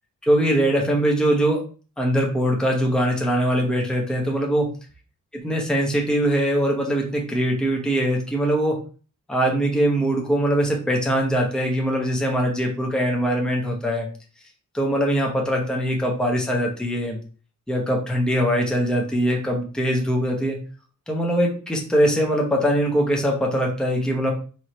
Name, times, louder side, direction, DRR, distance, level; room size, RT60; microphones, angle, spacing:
voice 1, 0.2-1.6 2.0-4.7 5.3-8.8 9.3-14.1 14.7-17.2 17.7-20.6 21.1-24.3, equal, ahead, 0 dB, 0.8 m, -22 dB
4.5 x 3.1 x 3.1 m, 0.38 s
wide cardioid pair, 155°, 33 cm